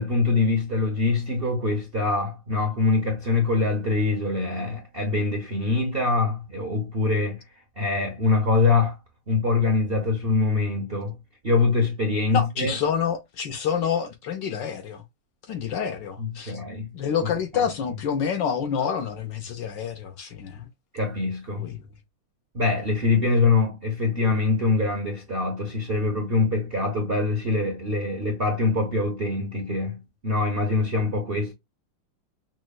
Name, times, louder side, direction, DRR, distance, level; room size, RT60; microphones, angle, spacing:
voice 1, 0.0-7.4 7.8-9.0 9.3-11.2 11.4-12.7 16.2-16.9 17.5-17.7 20.9-21.7 22.5-31.5, left 3 dB, 45° right, 0.7 m, -24 dB
voice 2, 12.3-15.0 15.5-16.6 16.9-20.7 21.6-21.8, left 7 dB, 70° left, 1.2 m, -28 dB
6.1 x 2.2 x 2.3 m
omnidirectional pair, 2.4 m